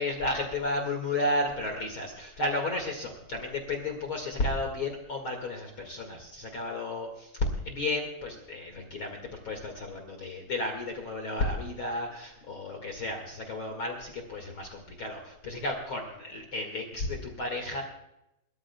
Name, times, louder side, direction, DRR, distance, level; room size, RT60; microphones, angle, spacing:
voice 1, 0.0-7.1 7.7-9.2 9.4-17.8, left 2 dB, 55° left, 2 dB, 1.5 m, -33 dB
28.5 x 13.5 x 2.2 m, 0.85 s
omnidirectional pair, 5.2 m